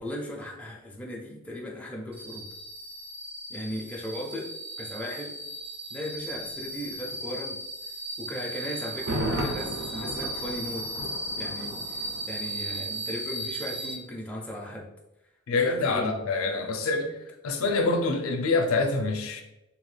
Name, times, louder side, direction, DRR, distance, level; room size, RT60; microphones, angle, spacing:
voice 1, 0.0-2.5 3.5-4.5 4.8-5.3 5.9-7.6 8.2-10.9 11.4-14.9 15.5-16.7 17.6-17.7, left 1 dB, 5° left, -3 dB, 0.4 m, -37 dB
sound 1, 2.1-13.9, right 1 dB, 90° right, 1.1 m, -36 dB
Thunder, 8.9-12.8 13.1-13.2, right 1 dB, 55° right, 0.5 m, -34 dB
voice 2, 15.5-17.2 17.4-19.4, left 3 dB, 85° left, 5 dB, 0.4 m, -26 dB
2.8 x 2.2 x 3.1 m, 0.94 s
head